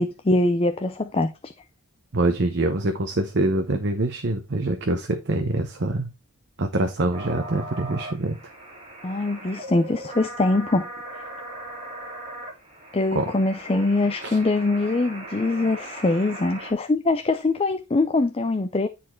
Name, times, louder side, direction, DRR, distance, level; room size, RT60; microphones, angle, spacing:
voice 1, 0.0-1.5 9.0-10.9 11.2-11.3 12.9-18.9, left 2 dB, 25° left, 0.5 m, -23 dB
voice 2, 2.1-6.1 6.6-8.4 13.1-13.3 14.2-14.4, right 2 dB, 50° right, 0.9 m, -25 dB
sound 1, 7.1-16.7, right 1 dB, 30° right, 2.5 m, -39 dB
9.9 x 4.3 x 4.4 m
head